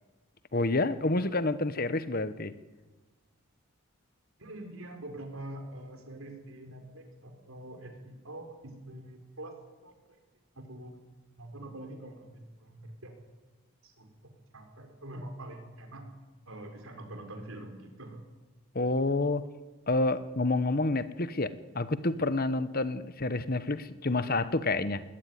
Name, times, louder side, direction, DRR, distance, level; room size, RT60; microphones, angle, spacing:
voice 1, 0.5-2.5 18.7-19.5 19.9-25.0, left 2 dB, 40° left, 13 dB, 1.1 m, -28 dB
voice 2, 4.4-9.9 10.5-11.0 11.4-13.2 13.8-14.1 14.5-16.1 16.5-18.2, right 1 dB, 65° right, 5 dB, 4.6 m, -45 dB
20.0 x 18.0 x 9.5 m, 1.2 s
head